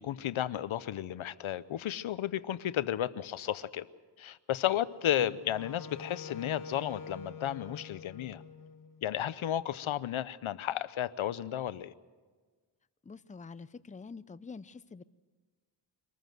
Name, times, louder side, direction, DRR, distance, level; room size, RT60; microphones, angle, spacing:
voice 1, 0.0-3.9 4.2-8.4 9.0-11.9, left 11 dB, 85° left, 16 dB, 0.7 m, -33 dB
Wind instrument woodwind instrument, 5.1-9.3, left 4 dB, 45° left, 1.1 m, -46 dB
voice 2, 13.0-15.0, left 4 dB, 15° left, 15 dB, 0.6 m, -46 dB
24.5 x 14.5 x 7.9 m, 1.4 s
cardioid pair, 70°, 47 cm